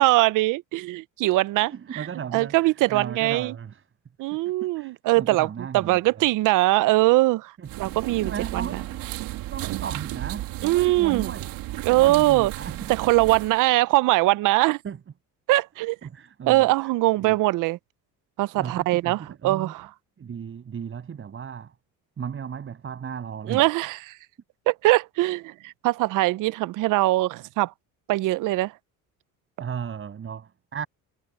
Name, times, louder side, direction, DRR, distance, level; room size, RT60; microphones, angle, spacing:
voice 1, 0.0-2.0 2.3-3.5 4.2-7.5 7.8-8.8 10.6-11.3 11.8-12.5 12.9-14.8 15.5-16.0 16.5-17.8 18.4-19.9 23.5-24.1 24.7-27.7 28.1-28.7, right 19 dB, 65° right, 0.6 m, -22 dB
voice 2, 1.7-3.8 4.6-6.3 7.6-9.1 9.5-11.6 11.9-12.9 14.8-15.0 16.0-16.9 17.2-17.4 18.5-19.7 20.2-21.7 22.2-23.6 29.6-30.9, right 7 dB, 35° right, 7.6 m, -35 dB
sound 1, 7.6-13.6, right 16 dB, 85° right, 2.7 m, -34 dB
cardioid pair, 125°, 34 cm